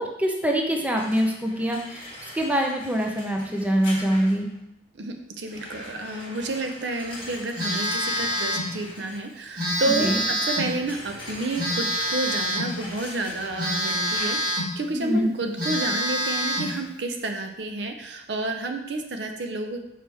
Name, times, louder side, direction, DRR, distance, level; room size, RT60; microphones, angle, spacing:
voice 1, 0.0-2.1 2.3-4.5 10.0-10.2 14.9-15.3, equal, 10° right, 1 dB, 0.7 m, -24 dB
sound 1, 0.9-4.6 5.5-14.7 16.5-16.8, left 1 dB, 30° left, 1.7 m, -42 dB
voice 2, 4.9-19.8, right 2 dB, 75° right, 4 dB, 0.7 m, -30 dB
Telephone, 7.6-8.7 9.6-10.8 11.6-12.8 13.6-14.8 15.2-15.3 15.6-16.8, equal, 55° right, 2.1 m, -26 dB
6.1 x 4.6 x 3.5 m, 0.82 s
head